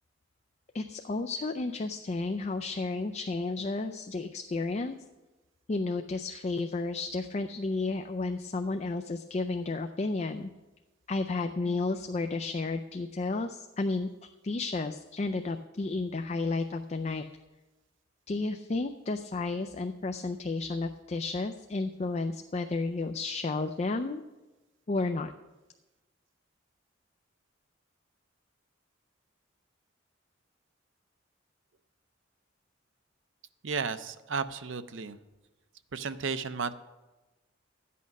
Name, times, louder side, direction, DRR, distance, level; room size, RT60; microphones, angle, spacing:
voice 1, 0.7-5.0 5.7-10.5 11.1-17.2 18.3-24.2 24.9-25.3, left 3 dB, 35° left, 7 dB, 0.4 m, -32 dB
voice 2, 33.6-35.2 35.9-36.7, right 5 dB, 70° right, 11 dB, 0.6 m, -33 dB
13.5 x 8.4 x 5.3 m, 1.1 s
head